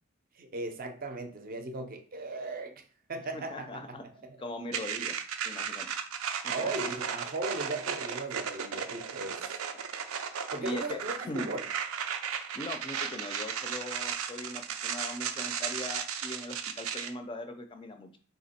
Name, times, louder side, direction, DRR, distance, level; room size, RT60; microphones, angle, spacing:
voice 1, 0.3-2.8 3.1-4.4 6.5-9.5 10.5-11.7, right 2 dB, 40° right, 0.5 m, -37 dB
voice 2, 3.3-4.0 4.4-5.2 5.4-5.9 6.4-6.9 10.3-11.5 12.5-18.2, left 1 dB, 25° left, 0.4 m, -40 dB
sound 1, 4.7-17.1, right 7 dB, 90° right, 0.5 m, -35 dB
3.7 x 2.9 x 4.2 m
head